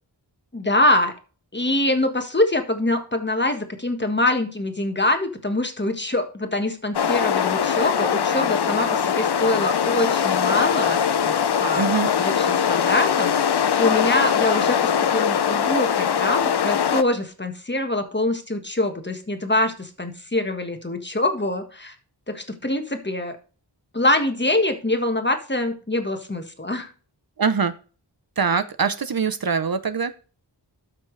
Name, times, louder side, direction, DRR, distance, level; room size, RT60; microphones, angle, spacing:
voice 1, 0.5-1.1 1.5-11.9 12.2-13.5 13.8-21.9 22.3-23.4 23.9-26.9, left 2 dB, 25° left, 6 dB, 1.5 m, -24 dB
sound 1, 6.9-17.0, left 8 dB, 65° left, 0.7 m, -21 dB
voice 2, 11.8-12.1 27.4-27.7 28.4-30.1, right 6 dB, 55° right, 12 dB, 0.7 m, -23 dB
13.0 x 5.8 x 3.3 m, 0.37 s
wide cardioid pair, 70°, 44 cm